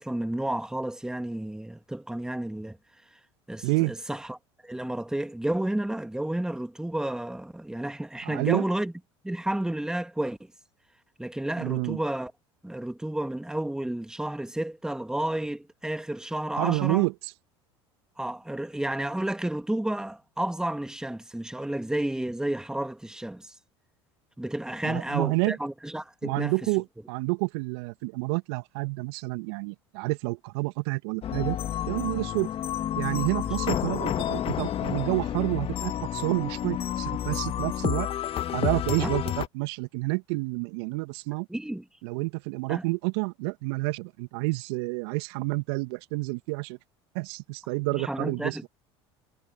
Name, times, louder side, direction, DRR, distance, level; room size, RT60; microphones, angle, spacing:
voice 1, 0.0-2.8 3.5-4.4 4.6-8.9 9.2-10.5 11.2-12.3 12.6-17.0 18.2-23.5 24.4-26.5 39.0-39.1 41.5-41.8 42.7-42.8 47.9-48.7, right 1 dB, 5° right, 2.1 m, -31 dB
voice 2, 3.6-3.9 8.2-8.6 11.6-12.0 16.6-17.1 24.8-25.6 26.2-31.6 31.9-32.5 32.9-38.1 38.5-41.5 42.0-46.8 47.1-48.7, right 27 dB, 65° right, 2.4 m, -29 dB
sound 1, 31.2-39.5, left 11 dB, 40° left, 1.6 m, -30 dB
hypercardioid pair, 70°, 14 cm